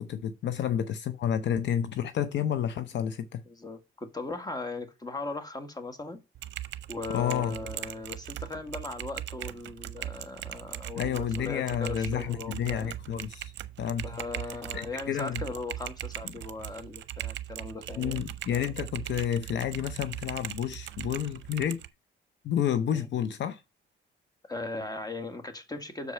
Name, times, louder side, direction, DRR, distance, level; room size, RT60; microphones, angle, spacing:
voice 1, 0.0-3.4 7.1-7.6 11.0-13.5 13.8-14.0 14.7-15.4 18.0-21.8 22.4-23.6, left 9 dB, 65° left, 0.7 m, -30 dB
voice 2, 3.5-6.2 6.9-12.9 14.0-18.2 22.9-23.1 24.5-26.1, left 3 dB, 20° left, 1.6 m, -38 dB
Typing, 6.3-21.9, right 13 dB, 65° right, 0.6 m, -40 dB
6.6 x 4.8 x 5.5 m
cardioid pair, 90°, 20 cm